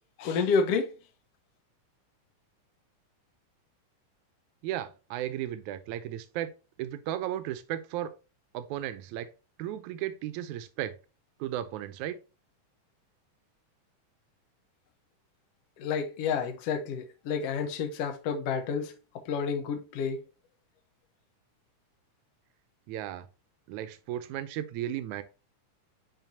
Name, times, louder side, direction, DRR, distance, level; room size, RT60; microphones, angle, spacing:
voice 1, 0.2-0.9 15.8-18.9 19.3-20.2, left 5 dB, 65° left, 1.7 m, -29 dB
voice 2, 4.6-6.5 6.8-8.1 8.5-9.3 9.6-10.9 11.4-12.2 22.9-23.3 23.7-25.2, right 12 dB, 80° right, 2.0 m, -35 dB
9.1 x 4.4 x 2.8 m
omnidirectional pair, 3.6 m